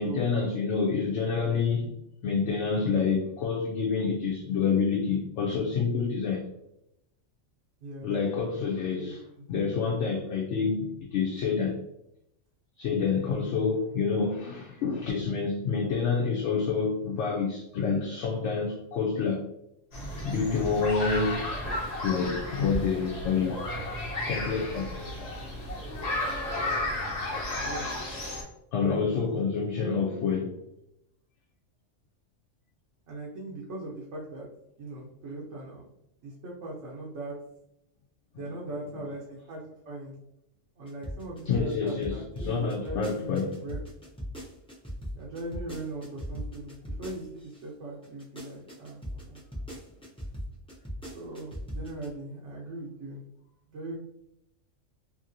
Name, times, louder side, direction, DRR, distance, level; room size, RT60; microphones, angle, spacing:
voice 1, 0.0-1.9 2.2-6.5 8.0-9.2 9.5-11.8 12.8-19.4 20.2-21.4 22.0-23.6 24.3-25.3 27.6-28.0 28.7-30.6 41.5-43.6, left 5 dB, 70° left, 0.9 m, -28 dB
voice 2, 7.8-8.1 8.9-9.4 27.5-27.9 28.8-29.3 29.7-29.9 33.1-34.5 34.8-35.9 36.2-37.4 38.3-40.1 40.8-43.8 45.1-49.4 51.1-53.2 53.7-54.0, right 2 dB, 70° right, 1.0 m, -40 dB
sound 1, 19.9-28.4, left 1 dB, 40° left, 0.7 m, -33 dB
sound 2, 40.9-47.6 48.0-52.1, equal, 5° left, 0.4 m, -38 dB
2.8 x 2.8 x 2.6 m
omnidirectional pair, 1.3 m